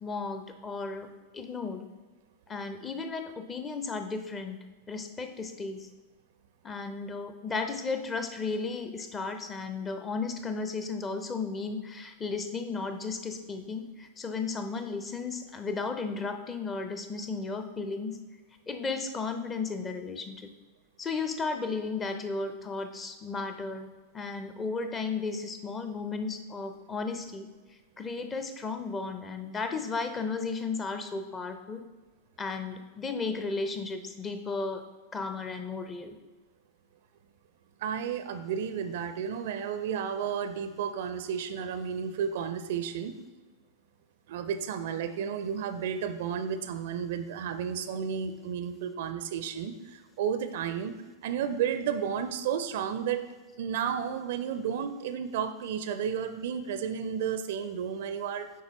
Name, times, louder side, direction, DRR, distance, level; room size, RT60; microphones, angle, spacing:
voice 1, 0.0-1.1 1.3-1.9 2.5-4.6 4.9-5.9 6.6-18.2 18.7-20.5 21.0-23.9 24.1-27.5 28.0-31.8 32.4-34.8 35.1-36.2, left 4 dB, 20° left, 7 dB, 0.6 m, -34 dB
voice 2, 37.8-43.1 44.3-50.9 51.2-53.2 53.6-58.5, right 8 dB, 55° right, 10 dB, 0.4 m, -32 dB
9.3 x 4.0 x 3.0 m, 1.3 s
figure-of-eight pair, 90°, 0 cm